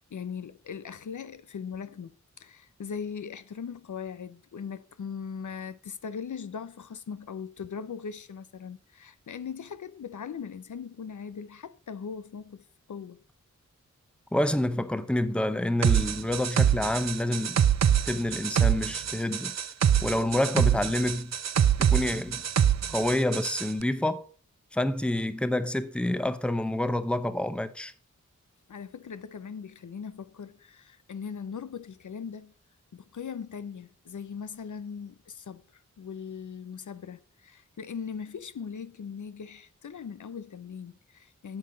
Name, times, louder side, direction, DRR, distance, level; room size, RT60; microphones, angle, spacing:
voice 1, 0.0-13.2 28.7-32.5 32.9-41.6, left 6 dB, 75° left, 0.6 m, -40 dB
voice 2, 14.3-17.6 18.1-19.5 20.0-21.3 21.8-22.4 22.9-24.2 24.7-27.9, left 1 dB, 5° left, 0.7 m, -28 dB
sound 1, 15.8-23.7, right 9 dB, 60° right, 0.5 m, -25 dB
8.9 x 7.6 x 3.9 m
wide cardioid pair, 85°, 30 cm